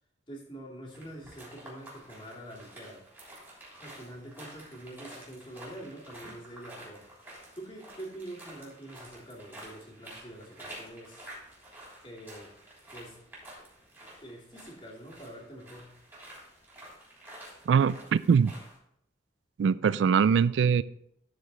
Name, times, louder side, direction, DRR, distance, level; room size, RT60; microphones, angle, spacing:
voice 1, 0.3-3.0 3.8-11.2 12.0-12.5 12.9-13.2 14.2-16.0, right 1 dB, 30° left, 2.5 m, -45 dB
sound 1, 0.9-18.8, right 1 dB, 15° right, 3.4 m, -50 dB
voice 2, 17.7-18.5 19.6-20.8, right 6 dB, 90° right, 0.3 m, -22 dB
12.5 x 4.9 x 3.9 m
head